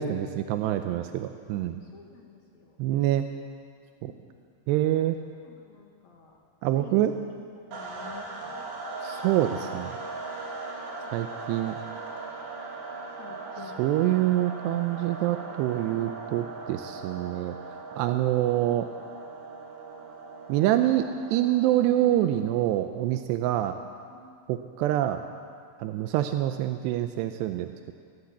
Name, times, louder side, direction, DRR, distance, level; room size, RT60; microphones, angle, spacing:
voice 1, 0.0-1.8 2.8-3.3 4.0-4.1 4.7-5.2 6.6-7.2 9.0-9.9 11.1-11.8 13.8-17.6 18.0-18.9 20.5-21.1 21.3-23.8 24.5-25.2 25.8-27.9, right 13 dB, 85° right, 8 dB, 2.9 m, -26 dB
voice 2, 1.5-2.8 4.0-4.3 4.8-5.1 5.4-6.3 6.7-6.9 7.6-8.6 11.0-11.1 13.2-13.8 18.1-18.2 23.8-24.4, left 6 dB, 50° left, 0 dB, 2.6 m, -51 dB
sound 1, 7.7-22.5, right 3 dB, 65° right, 4.5 m, -39 dB
19.0 x 16.0 x 8.6 m, 2.2 s
omnidirectional pair, 4.8 m